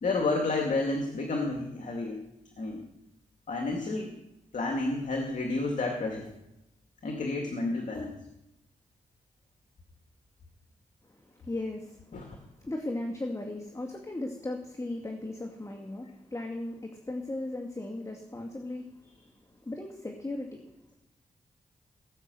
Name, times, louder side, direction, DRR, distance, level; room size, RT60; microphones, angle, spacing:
voice 1, 0.0-2.2 2.6-2.8 3.5-4.1 4.5-6.3 7.0-8.2 12.1-12.2, left 3 dB, 70° left, 2 dB, 2.2 m, -30 dB
voice 2, 11.1-20.6, left 2 dB, 25° left, 2 dB, 2.4 m, -37 dB
18.0 x 6.6 x 7.9 m, 0.89 s
cardioid pair, 55°, 13 cm